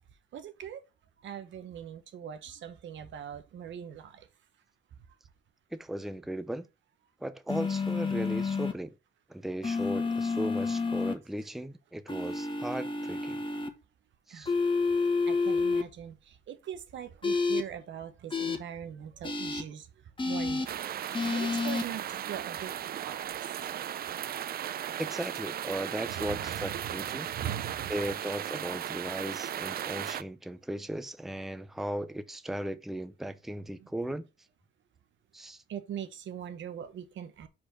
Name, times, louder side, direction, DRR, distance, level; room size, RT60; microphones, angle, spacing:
voice 1, 0.3-0.8 1.2-4.1 14.3-14.5 15.3-16.2 16.5-19.8 20.3-20.7 21.3-22.0 22.3-22.7 23.1-23.2 26.2-27.9 35.7-37.5, right 9 dB, 70° right, 1.1 m, -41 dB
voice 2, 5.7-6.7 7.2-8.9 9.3-13.4 14.3-14.5 25.0-27.3 27.9-34.3 35.3-35.6, right 1 dB, ahead, 0.6 m, -37 dB
sound 1, 7.5-8.7 9.6-11.1 12.1-13.7 14.4-15.8 17.2-17.6 18.3-18.6 19.2-19.6 20.2-20.7 21.1-21.8, left 4 dB, 25° left, 1.4 m, -29 dB
sound 2, 20.7-30.2, right 10 dB, 50° right, 0.4 m, -36 dB
5.0 x 4.4 x 5.7 m
cardioid pair, 90°, 20 cm